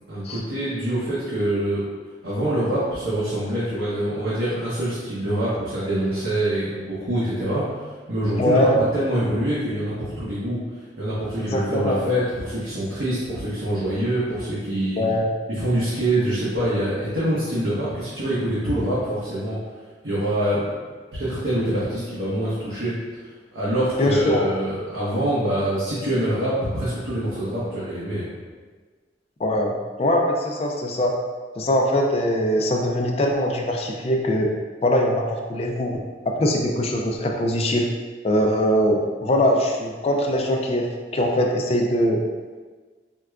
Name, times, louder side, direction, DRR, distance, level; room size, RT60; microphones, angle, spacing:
voice 1, 0.1-1.8 2.2-10.6 11.0-15.0 15.5-19.6 20.0-20.7 21.2-22.9 23.2-28.3, right 1 dB, 85° right, -10 dB, 0.8 m, -25 dB
voice 2, 8.4-8.8 11.5-12.0 15.0-15.3 24.0-24.5 29.4-31.1 31.6-34.5 34.8-36.0 36.4-37.9 38.2-42.2, left 1 dB, 35° left, 1 dB, 0.3 m, -22 dB
4.6 x 2.2 x 2.3 m, 1.4 s
head